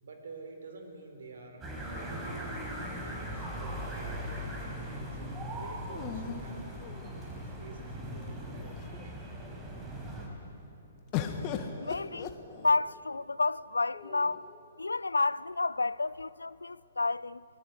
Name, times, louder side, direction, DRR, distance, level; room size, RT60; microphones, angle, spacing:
voice 1, 0.0-2.2 2.6-5.2 5.6-9.2, right 3 dB, 60° right, 4.3 m, -49 dB
sound 1, 1.6-10.3, equal, 15° right, 4.6 m, -39 dB
sound 2, 2.8-3.9 5.9-7.4 8.2-8.3 8.6-9.2 11.1-13.0 13.9-14.6, left 8 dB, 30° left, 1.7 m, -39 dB
voice 2, 11.8-14.5 14.8-17.4, left 3 dB, 80° left, 0.4 m, -30 dB
24.0 x 20.0 x 8.2 m
figure-of-eight pair, 120°, 0 cm